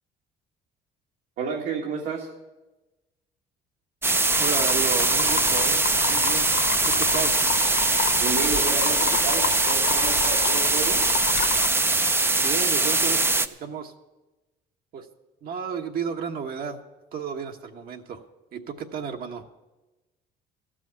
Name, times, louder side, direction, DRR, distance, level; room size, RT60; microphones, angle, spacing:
voice 1, 1.4-2.3 8.2-11.1, right 5 dB, 80° right, -1 dB, 1.7 m, -31 dB
sound 1, 4.0-13.5, right 3 dB, 15° right, 0.5 m, -22 dB
sound 2, 4.3-11.7, left 12 dB, 70° left, 0.6 m, -31 dB
voice 2, 4.4-6.5 6.8-7.4 12.4-13.9 14.9-15.1 15.4-16.8 17.1-18.2 18.5-19.5, right 6 dB, 60° right, 3 dB, 1.2 m, -33 dB
14.5 x 6.2 x 9.5 m, 1.1 s
cardioid pair, 110°, 17 cm